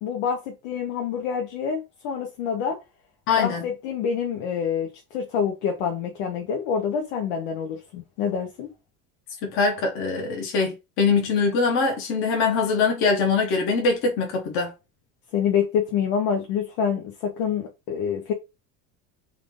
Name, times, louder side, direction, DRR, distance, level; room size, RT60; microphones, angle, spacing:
voice 1, 0.0-2.8 3.4-8.7 15.3-18.3, left 7 dB, 85° left, 1.0 m, -27 dB
voice 2, 3.3-3.6 9.4-14.7, left 4 dB, 35° left, 0.9 m, -23 dB
3.6 x 2.5 x 3.5 m
cardioid pair, 175°, 36 cm